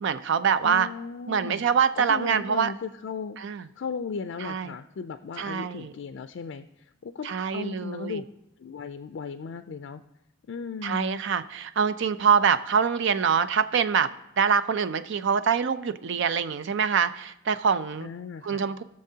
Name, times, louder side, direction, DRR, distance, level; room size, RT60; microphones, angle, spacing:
voice 1, 0.0-0.9 1.3-2.7 3.4-3.7 4.4-4.7 5.4-5.9 7.2-8.2 10.8-14.1 14.4-18.1 18.4-18.8, right 6 dB, 65° right, 13 dB, 0.4 m, -25 dB
voice 2, 0.6-1.7 2.0-8.2 8.6-10.0 10.5-11.2 18.0-18.6, left 5 dB, 65° left, 8 dB, 0.4 m, -36 dB
19.5 x 6.6 x 2.8 m, 0.85 s
head